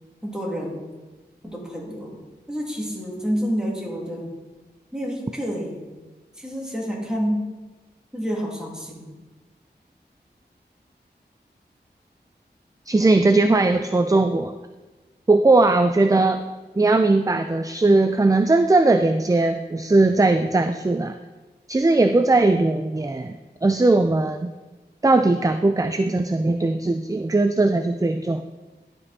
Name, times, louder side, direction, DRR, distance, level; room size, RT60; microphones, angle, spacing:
voice 1, 0.2-0.8 1.4-2.2 2.5-4.3 4.9-5.8 6.4-7.4 8.1-9.0, equal, 5° right, -3 dB, 2.5 m, -28 dB
voice 2, 12.9-14.5 15.3-16.4 16.8-21.2 21.7-23.3 23.6-24.5 25.0-28.4, right 2 dB, 20° right, 8 dB, 0.4 m, -19 dB
12.5 x 5.3 x 4.2 m, 1.2 s
wide cardioid pair, 60°, 18 cm